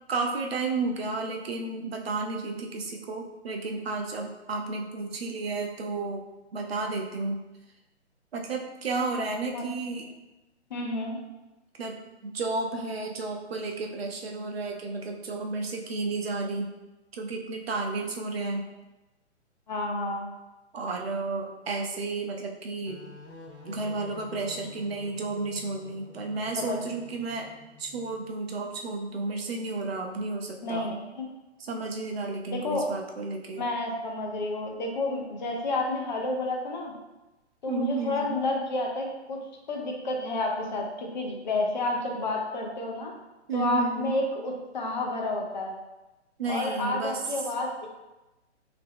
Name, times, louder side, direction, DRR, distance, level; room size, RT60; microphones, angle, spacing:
voice 1, 0.1-6.2 6.5-7.4 8.3-10.1 11.8-12.0 12.2-16.7 17.1-18.7 20.7-23.0 23.6-27.5 27.8-30.9 31.6-33.6 37.7-38.4 43.5-44.1 46.4-47.2, right 3 dB, 60° right, 2 dB, 0.7 m, -32 dB
voice 2, 10.7-11.2 19.7-20.3 26.6-26.8 30.6-31.3 32.5-32.8 33.5-36.9 37.6-39.4 39.7-43.1 43.5-45.8 46.5-47.9, left 2 dB, 40° left, 0 dB, 0.7 m, -30 dB
sound 1, 22.9-28.4, left 3 dB, 70° left, 1.2 m, -49 dB
3.2 x 2.9 x 3.5 m, 1.0 s
hypercardioid pair, 140°, 35 cm